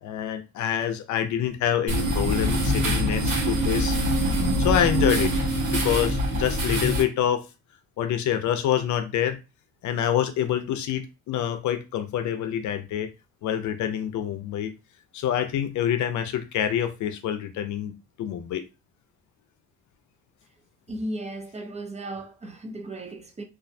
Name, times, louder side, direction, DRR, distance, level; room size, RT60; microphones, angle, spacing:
voice 1, 0.0-4.0 4.6-7.4 8.0-9.4 9.8-13.1 13.4-14.7 15.1-17.9 18.2-18.6, left 10 dB, 70° left, 0.5 m, -26 dB
sound 1, 1.9-7.0, equal, 75° right, 1.2 m, -24 dB
voice 2, 20.9-23.4, right 1 dB, 20° right, 0.5 m, -35 dB
2.4 x 2.1 x 2.6 m
cardioid pair, 90°, 30 cm